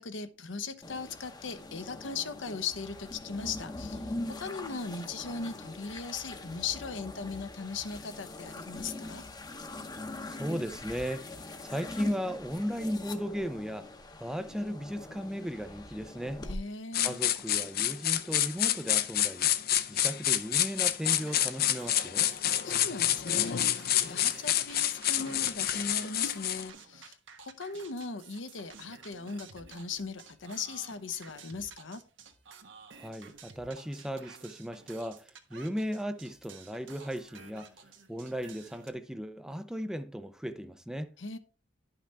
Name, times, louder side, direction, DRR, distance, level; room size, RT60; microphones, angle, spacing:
voice 1, 0.0-9.2 16.5-17.2 22.6-27.2 27.4-32.0 41.2-41.4, left 4 dB, 75° left, 0.9 m, -38 dB
sound 1, 0.8-16.6, left 2 dB, 20° left, 0.8 m, -42 dB
voice 2, 10.2-13.9 14.2-16.4 17.0-19.5 19.9-22.3 32.9-37.7 38.1-41.1, equal, 5° right, 0.5 m, -36 dB
sound 2, 16.9-26.7, left 12 dB, 55° left, 0.6 m, -28 dB
sound 3, 21.0-38.9, right 5 dB, 80° right, 1.3 m, -53 dB
11.5 x 5.9 x 3.4 m
head